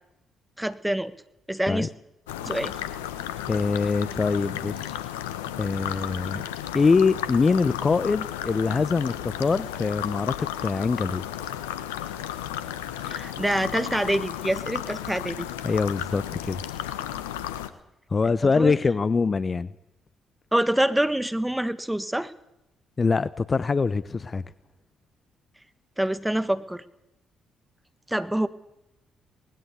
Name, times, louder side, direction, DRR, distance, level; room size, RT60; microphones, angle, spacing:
voice 1, 0.6-1.1 1.5-1.9 2.4-2.7 13.0-15.5 18.4-18.7 20.5-22.3 26.0-26.8 28.1-28.5, right 1 dB, 5° right, 14 dB, 1.5 m, -26 dB
sound 1, 2.3-17.7, left 11 dB, 85° left, 1.1 m, -33 dB
voice 2, 3.5-5.0 5.6-6.4 6.7-11.5 15.6-16.6 18.1-19.7 23.0-24.4, left 4 dB, 35° left, 18 dB, 0.8 m, -24 dB
20.0 x 17.0 x 8.3 m, 0.85 s
hypercardioid pair, 45°, 0 cm